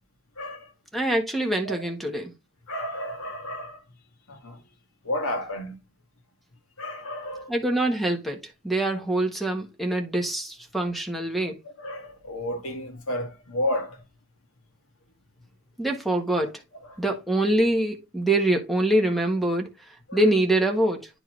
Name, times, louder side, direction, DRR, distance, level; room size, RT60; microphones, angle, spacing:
voice 1, 0.4-0.7 1.7-1.8 2.7-3.8 4.3-4.6 5.0-5.8 6.8-7.6 11.8-14.0 16.8-17.0 20.1-20.2, left 1 dB, 80° left, 1.8 m, -32 dB
voice 2, 0.9-2.3 7.5-11.6 15.8-16.6 17.0-19.7 20.1-21.1, right 1 dB, ahead, 1.3 m, -24 dB
9.7 x 4.7 x 3.3 m
head